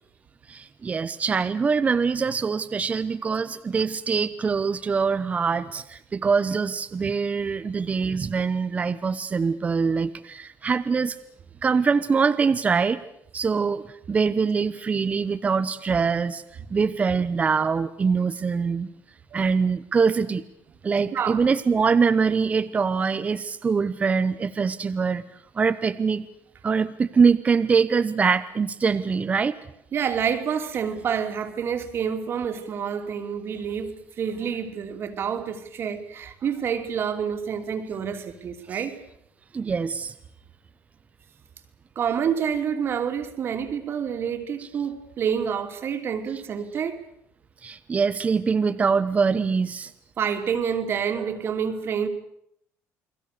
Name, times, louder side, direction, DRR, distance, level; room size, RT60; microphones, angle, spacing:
voice 1, 0.5-11.1 11.6-13.0 13.3-13.8 14.1-16.4 16.7-18.9 19.3-20.4 20.8-25.2 25.6-26.3 26.6-29.6 38.7-38.8 39.5-40.1 47.6-49.9, right 5 dB, 25° right, 1.0 m, -23 dB
voice 2, 29.9-39.0 42.0-47.0 50.2-52.1, right 7 dB, 45° right, 2.9 m, -28 dB
29.5 x 20.5 x 6.8 m
cardioid pair, 125°, 6 cm